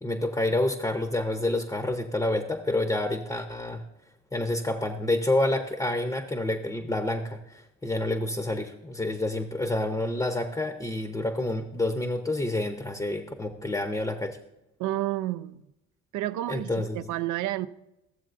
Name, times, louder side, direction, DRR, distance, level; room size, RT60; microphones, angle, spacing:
voice 1, 0.0-3.8 4.3-14.4 16.5-17.0, left 1 dB, 10° left, 0.6 m, -28 dB
voice 2, 14.8-15.6 16.1-17.7, right 14 dB, 80° right, 0.5 m, -30 dB
14.0 x 7.3 x 2.5 m
cardioid pair, 90°, 30 cm